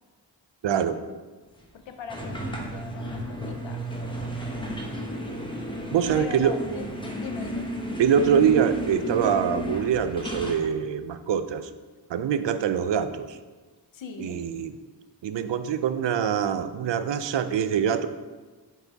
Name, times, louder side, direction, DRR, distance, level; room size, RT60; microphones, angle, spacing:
voice 1, 0.6-1.0 5.9-6.6 8.0-11.7 12.1-13.4 14.2-14.7 15.2-18.1, right 8 dB, 75° right, 11 dB, 0.5 m, -24 dB
voice 2, 1.9-3.8 6.1-6.8 7.2-7.7 13.9-14.4, left 5 dB, 90° left, 7 dB, 0.7 m, -39 dB
sound 1, 2.1-10.7, equal, 10° left, 0.8 m, -33 dB
7.9 x 4.3 x 3.5 m, 1.3 s
wide cardioid pair, 110°, 44 cm